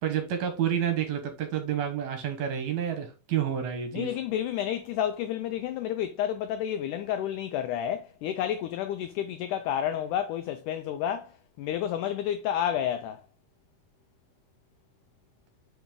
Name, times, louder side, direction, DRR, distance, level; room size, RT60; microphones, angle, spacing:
voice 1, 0.0-4.1, right 9 dB, 70° right, 2.0 m, -29 dB
voice 2, 3.9-11.3 11.6-13.2, left 10 dB, 85° left, 1.8 m, -30 dB
5.9 x 5.2 x 3.6 m
omnidirectional pair, 4.1 m